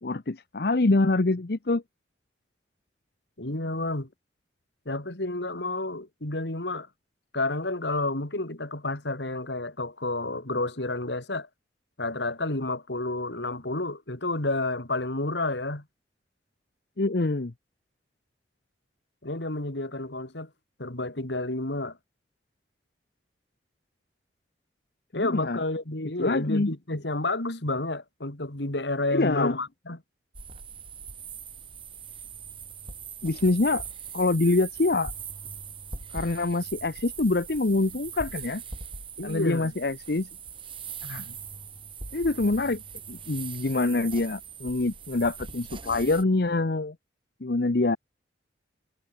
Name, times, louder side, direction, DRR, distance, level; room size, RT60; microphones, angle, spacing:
voice 1, 0.0-1.8 17.0-17.5 25.1-25.6 26.2-26.7 29.1-29.6 33.2-33.8 34.1-35.1 36.1-38.6 39.2-40.3 41.0-41.2 42.1-42.8 43.1-46.9 47.4-48.0, left 2 dB, 60° left, 0.8 m, -25 dB
voice 2, 3.4-4.1 4.8-6.9 7.3-11.5 12.0-15.8 19.2-20.5 20.8-22.0 25.1-30.0 39.2-39.7, left 2 dB, 75° left, 3.0 m, -30 dB
sound 1, 30.3-46.2, right 6 dB, 30° right, 6.5 m, -41 dB
head